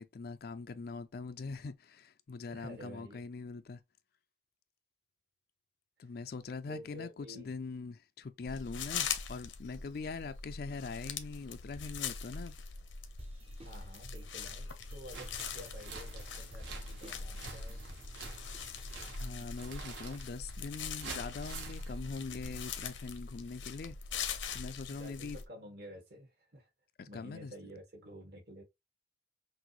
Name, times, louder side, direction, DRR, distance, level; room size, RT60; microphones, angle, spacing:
voice 1, 0.0-3.8 6.0-12.5 19.2-23.9 24.5-25.4 27.0-27.5, left 4 dB, 50° left, 0.4 m, -42 dB
voice 2, 2.5-3.2 6.0-6.1 6.7-7.5 13.6-17.8 24.9-26.7 27.1-28.6, equal, 55° right, 1.8 m, -50 dB
sound 1, 8.5-25.4, left 6 dB, 85° left, 0.8 m, -42 dB
sound 2, 13.2-20.0, right 2 dB, 30° right, 0.7 m, -56 dB
sound 3, 15.1-22.7, right 3 dB, 75° right, 1.4 m, -48 dB
6.0 x 2.6 x 3.0 m
head